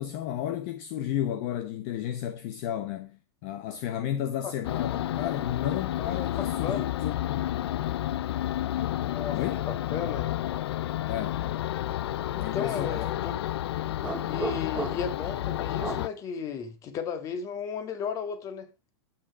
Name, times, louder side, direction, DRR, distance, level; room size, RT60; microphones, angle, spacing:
voice 1, 0.0-7.5 9.3-9.6 11.1-11.4 12.4-13.0, left 11 dB, 40° left, 1.1 m, -33 dB
sound 1, 4.6-16.1, left 13 dB, 75° left, 0.7 m, -31 dB
voice 2, 9.0-10.3 12.3-13.3 14.3-18.7, left 7 dB, 25° left, 1.9 m, -34 dB
sound 2, 14.0-15.2 15.8-16.1, right 4 dB, 5° right, 1.0 m, -35 dB
10.5 x 8.7 x 4.7 m
supercardioid pair, 160°, 14 cm